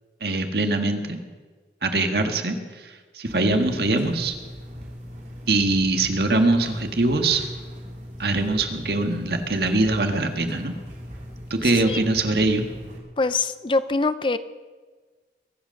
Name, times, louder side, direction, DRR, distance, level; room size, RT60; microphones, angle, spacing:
voice 1, 0.2-1.2 1.8-4.3 5.5-7.4 8.2-10.7 11.5-12.6, right 2 dB, 65° right, 5 dB, 1.6 m, -22 dB
sound 1, 3.3-13.0, equal, 40° right, 2.8 m, -39 dB
voice 2, 11.6-12.0 13.2-14.4, left 3 dB, 30° left, 13 dB, 0.5 m, -24 dB
22.5 x 8.2 x 6.5 m, 1.4 s
head